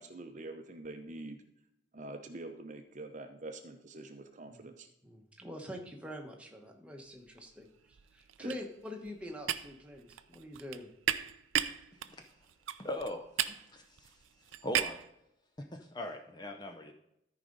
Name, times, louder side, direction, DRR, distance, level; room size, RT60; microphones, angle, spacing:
voice 1, 0.0-1.4 1.9-4.9 8.4-8.6, right 2 dB, 40° right, 6 dB, 0.7 m, -45 dB
voice 2, 5.0-10.9, left 1 dB, 5° right, 1 dB, 1.1 m, -45 dB
sound 1, 7.3-7.6 7.9-15.1, right 10 dB, 85° right, 0.5 m, -36 dB
voice 3, 12.8-14.2 14.6-15.0 15.6-16.9, left 1 dB, 20° left, 5 dB, 0.5 m, -40 dB
13.5 x 5.0 x 3.9 m, 0.80 s
head